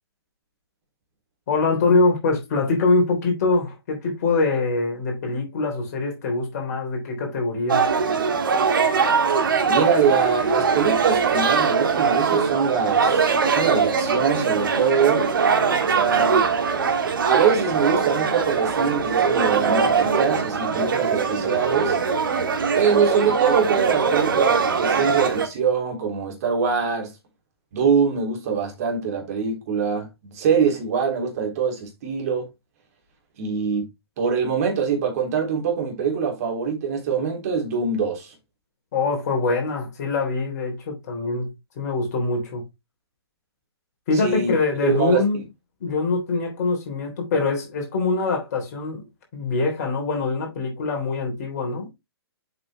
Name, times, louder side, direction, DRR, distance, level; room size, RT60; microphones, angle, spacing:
voice 1, 1.5-7.9 38.9-41.5 41.8-42.6 44.1-45.4 45.8-49.1 49.3-51.9, left 3 dB, 40° left, 3.6 m, -23 dB
sound 1, 7.7-25.5, right 5 dB, 55° right, 1.6 m, -21 dB
voice 2, 9.7-15.3 15.8-16.5 17.2-22.0 22.8-27.1 27.7-32.5 33.4-33.9 34.2-38.3 44.1-44.5 44.8-45.2, right 6 dB, 35° right, 3.4 m, -23 dB
7.7 x 5.9 x 3.2 m
figure-of-eight pair, 125°, 13 cm